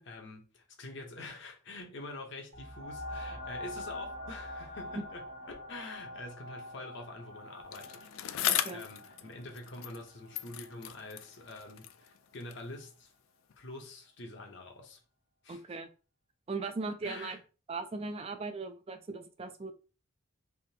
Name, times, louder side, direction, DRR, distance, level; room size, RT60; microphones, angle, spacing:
voice 1, 0.0-5.2 5.7-13.1 13.6-15.0 15.4-15.6 17.0-17.4, left 2 dB, 60° left, 0.9 m, -46 dB
sound 1, 2.5-11.8 12.4-12.5, left 1 dB, 70° right, 1.2 m, -45 dB
Bicycle, 7.7-10.1 10.3-12.7 13.5-13.6, left 11 dB, 80° left, 0.3 m, -37 dB
voice 2, 8.5-8.8 15.5-15.9 16.5-17.4 17.7-19.7, right 3 dB, 30° right, 0.4 m, -38 dB
3.6 x 2.8 x 2.8 m
head